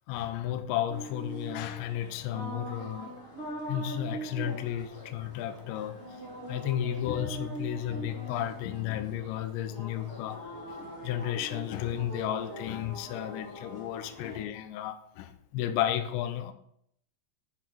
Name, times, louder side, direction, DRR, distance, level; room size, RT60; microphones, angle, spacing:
voice 1, 0.1-3.1 3.7-6.0 6.5-10.4 10.7-16.5, left 11 dB, 85° left, 2.6 m, -33 dB
sound 1, 0.9-14.4, right 1 dB, 15° left, 2.5 m, -42 dB
8.1 x 6.0 x 4.5 m
omnidirectional pair, 5.9 m